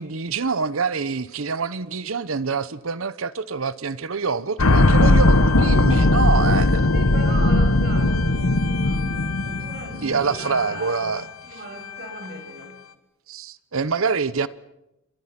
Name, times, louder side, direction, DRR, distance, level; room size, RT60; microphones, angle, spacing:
voice 1, 0.0-6.9 10.0-11.2 13.3-14.5, right 5 dB, 75° right, 0.9 m, -26 dB
sound 1, 4.6-10.8 11.1-11.2, left 2 dB, 80° left, 1.3 m, -18 dB
voice 2, 6.9-11.1 11.4-12.8, right 2 dB, 50° right, 7.8 m, -37 dB
29.0 x 25.5 x 6.0 m
head